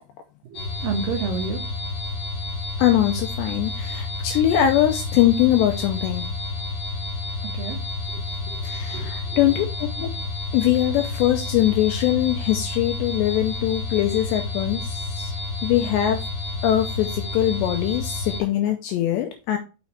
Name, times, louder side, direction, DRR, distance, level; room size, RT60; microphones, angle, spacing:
voice 1, 0.4-1.7 7.4-7.8 8.1-8.2 8.5-8.6 8.9-9.6, right 5 dB, 85° right, 2 dB, 1.9 m, -31 dB
sound 1, 0.5-18.4, left 2 dB, 65° left, 1.4 m, -30 dB
voice 2, 2.8-6.3 8.6-9.7 10.0-10.1 10.5-15.3 15.6-16.2 16.6-19.6, left 12 dB, 85° left, 5 dB, 2.6 m, -22 dB
6.2 x 5.7 x 4.6 m, 0.31 s
omnidirectional pair, 5.6 m